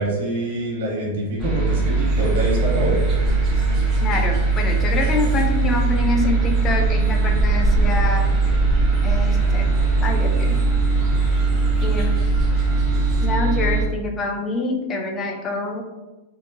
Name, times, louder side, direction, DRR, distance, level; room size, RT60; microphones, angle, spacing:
voice 1, 0.0-3.0, right 1 dB, 60° right, -3 dB, 1.0 m, -25 dB
sound 1, 1.4-13.8, right 3 dB, 5° right, 0.9 m, -20 dB
sound 2, 1.8-13.3, equal, 40° right, 0.5 m, -30 dB
voice 2, 4.0-8.3 9.0-9.7 10.0-10.6 11.8-12.2 13.2-15.8, left 3 dB, 25° left, 3 dB, 0.5 m, -26 dB
2.6 x 2.2 x 2.6 m, 1.1 s
hypercardioid pair, 115°, 0 cm